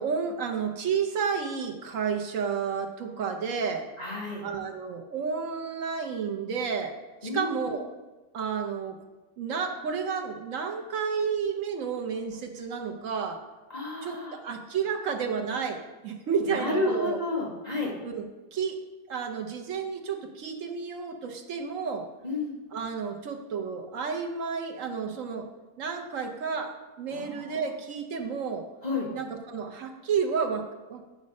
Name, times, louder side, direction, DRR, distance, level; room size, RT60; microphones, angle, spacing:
voice 1, 0.0-3.8 4.4-6.9 7.2-7.9 8.3-9.0 9.4-13.4 14.0-17.2 18.0-18.2 18.5-18.8 19.1-22.0 22.7-25.5 25.8-28.7 29.1-31.0, right 6 dB, 70° right, 4 dB, 1.1 m, -31 dB
voice 2, 4.0-4.4 7.2-7.8 13.7-14.4 16.4-17.9 22.2-22.6 27.1-27.7 28.8-29.1, left 2 dB, 30° left, -4 dB, 1.8 m, -31 dB
9.3 x 5.2 x 5.3 m, 1.2 s
omnidirectional pair, 1.4 m